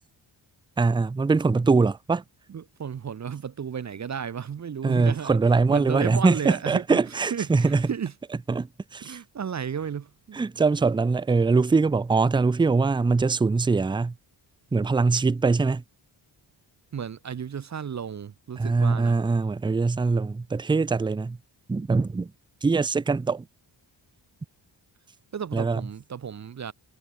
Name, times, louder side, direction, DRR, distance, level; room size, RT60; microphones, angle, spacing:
voice 1, 0.8-2.2 4.8-7.9 8.5-9.2 10.3-14.2 14.7-15.8 18.6-21.4 21.7-22.3 22.6-23.5 25.5-25.8, right 4 dB, 10° right, 0.4 m, -22 dB
voice 2, 2.5-5.4 5.7-7.0 7.3-8.1 9.0-10.4 16.9-19.2 25.3-26.7, right 7 dB, 35° right, 0.9 m, -33 dB
wide cardioid pair, 150°, 46 cm